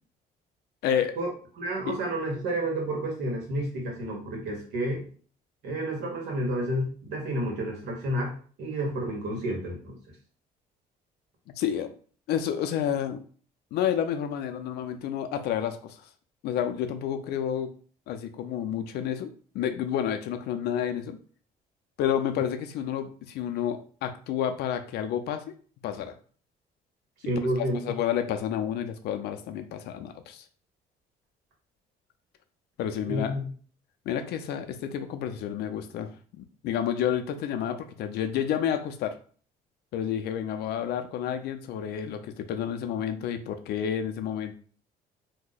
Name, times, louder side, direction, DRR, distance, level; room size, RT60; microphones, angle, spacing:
voice 1, 0.8-1.1 1.9-2.0 11.6-11.9 12.3-13.2 13.7-16.0 16.4-17.7 18.1-21.2 22.0-25.4 25.8-26.1 27.6-30.4 32.8-33.4 34.1-39.2 39.9-44.6, left 9 dB, 75° left, 8 dB, 0.5 m, -30 dB
voice 2, 1.6-5.1 5.6-10.0 27.2-27.8 33.0-33.5, right 1 dB, 80° right, 0 dB, 1.3 m, -30 dB
2.8 x 2.1 x 3.9 m, 0.43 s
cardioid pair, 110°, 17 cm